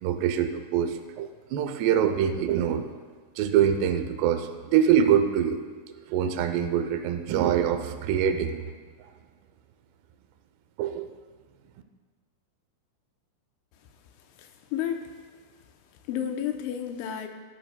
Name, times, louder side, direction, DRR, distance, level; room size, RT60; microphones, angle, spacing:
voice 1, 0.0-3.0 3.4-5.6 6.1-8.6 10.8-11.1, right 9 dB, 80° right, 7 dB, 2.6 m, -24 dB
voice 2, 14.4-15.1 16.1-17.3, left 9 dB, 90° left, 5 dB, 3.1 m, -31 dB
18.5 x 12.5 x 2.3 m, 1.5 s
omnidirectional pair, 5.4 m